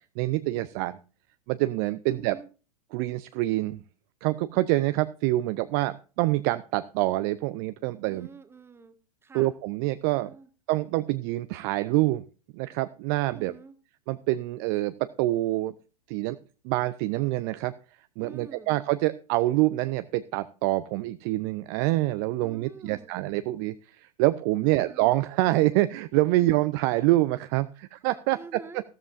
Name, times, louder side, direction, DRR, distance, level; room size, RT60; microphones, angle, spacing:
voice 1, 0.2-1.0 1.5-2.4 2.9-3.8 4.2-8.3 9.3-10.3 10.7-12.2 12.5-13.5 14.1-15.7 16.1-16.4 16.6-17.7 18.2-28.4, right 18 dB, 35° right, 13 dB, 0.5 m, -26 dB
voice 2, 2.1-2.5 8.0-8.9 9.2-9.5 10.2-10.5 13.3-13.7 18.2-18.7 22.4-23.1 24.6-25.1 28.3-28.8, right 5 dB, 10° right, 9 dB, 1.5 m, -46 dB
14.5 x 13.0 x 2.6 m, 0.35 s
figure-of-eight pair, 95°, 20 cm